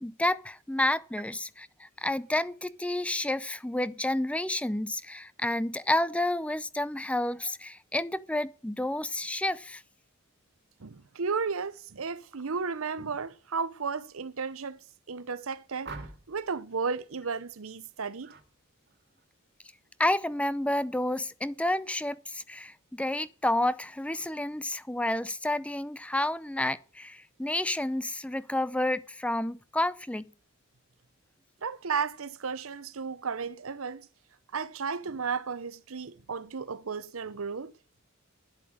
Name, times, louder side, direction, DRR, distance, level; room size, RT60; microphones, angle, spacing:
voice 1, 0.0-1.7 2.0-9.8 20.0-30.2, left 1 dB, 5° left, 0.5 m, -30 dB
voice 2, 10.8-14.8 15.1-15.9 16.3-18.3 31.6-34.1 34.5-37.7, right 5 dB, 75° right, 0.8 m, -34 dB
sound 1, 15.8-16.5 18.2-18.5 18.9-19.2, right 3 dB, 50° right, 1.9 m, -44 dB
10.5 x 8.2 x 9.0 m
head